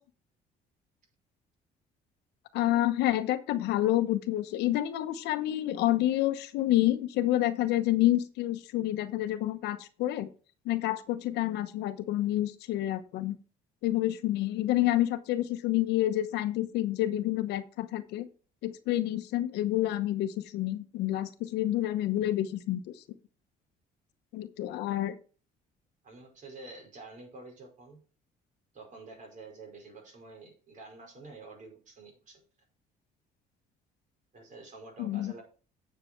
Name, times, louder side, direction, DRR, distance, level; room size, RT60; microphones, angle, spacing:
voice 1, 2.5-10.3 10.6-13.4 13.8-18.3 18.6-22.9 24.3-25.2 35.0-35.3, left 14 dB, 85° left, 10 dB, 1.0 m, -28 dB
voice 2, 26.0-28.0 28.7-32.4 34.3-35.4, right 3 dB, 50° right, 2 dB, 5.1 m, -48 dB
9.3 x 6.6 x 4.5 m, 0.38 s
cardioid pair, 110°, 17 cm